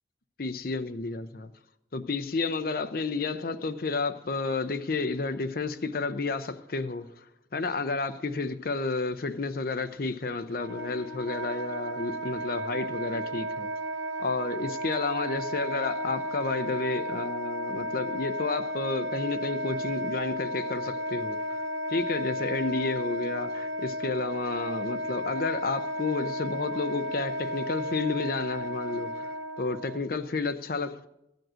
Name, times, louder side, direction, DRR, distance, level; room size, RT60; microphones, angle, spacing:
voice 1, 0.4-1.5 1.9-7.1 7.5-13.7 14.2-21.4 21.9-31.1, left 3 dB, 55° left, 0.6 m, -31 dB
Wind instrument woodwind instrument, 10.5-30.0, equal, 75° right, 1.0 m, -33 dB
14.5 x 5.3 x 7.5 m
head